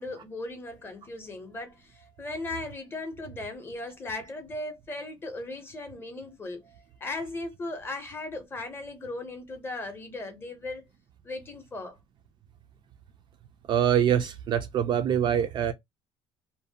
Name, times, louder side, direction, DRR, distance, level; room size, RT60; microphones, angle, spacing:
voice 1, 0.0-10.8 11.2-12.0, left 2 dB, 20° left, 0.6 m, -37 dB
voice 2, 13.7-15.7, right 9 dB, 40° right, 0.3 m, -24 dB
2.5 x 2.0 x 2.7 m
cardioid pair, 155°, 12 cm